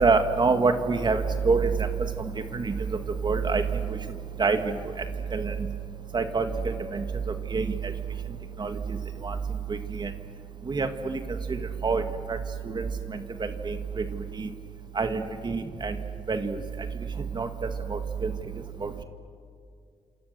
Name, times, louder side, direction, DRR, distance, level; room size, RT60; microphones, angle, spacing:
voice 1, 0.0-1.9 2.5-2.7 3.2-3.6 4.4-4.7 5.3-5.5 6.1-7.0 7.5-7.9 8.6-9.0 9.2-9.4 9.7-10.1 10.7-11.2 11.5-11.6 11.8-12.0 12.3-12.4 12.7-12.8 13.1-14.0 14.4-14.5 15.0-16.0 16.3-16.6 17.3-18.3 18.8-18.9, right 4 dB, 40° right, 7 dB, 1.9 m, -26 dB
29.0 x 27.0 x 6.8 m, 2.2 s
cardioid pair, 70°, 12 cm